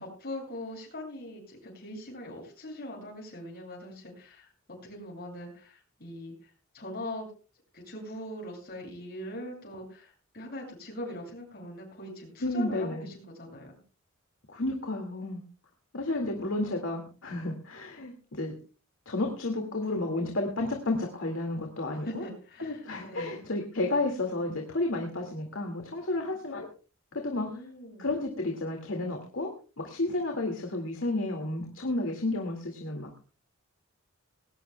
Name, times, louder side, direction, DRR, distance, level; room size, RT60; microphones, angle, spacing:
voice 1, 0.0-4.5 4.8-7.3 7.7-13.7 22.0-23.4 27.3-28.1, left 1 dB, 50° left, 0 dB, 7.5 m, -41 dB
voice 2, 12.4-13.1 14.5-15.4 15.9-18.5 19.1-22.2 22.6-26.7 27.1-27.6 28.0-33.2, left 2 dB, 65° left, 2 dB, 2.2 m, -32 dB
20.0 x 17.5 x 2.3 m, 0.35 s
head